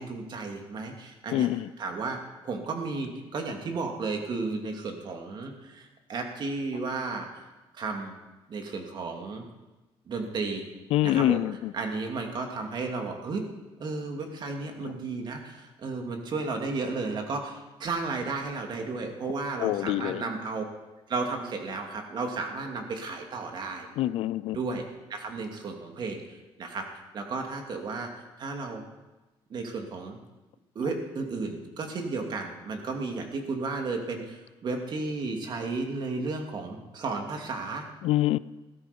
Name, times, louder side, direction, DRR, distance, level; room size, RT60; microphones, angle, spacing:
voice 1, 0.0-1.5 1.8-2.2 2.4-7.4 7.7-8.2 8.5-9.4 10.1-10.6 11.0-11.4 11.7-13.4 13.8-20.6 21.1-23.9 24.5-24.8 25.1-26.2 26.6-28.8 29.5-30.2 30.7-37.8, right 3 dB, 50° right, 3 dB, 2.7 m, -33 dB
voice 2, 1.3-1.7 10.9-11.7 19.6-20.2 24.0-24.6 38.0-38.4, left 14 dB, 80° left, 19 dB, 0.4 m, -25 dB
16.5 x 13.0 x 5.3 m, 1.1 s
cardioid pair, 120°, 10 cm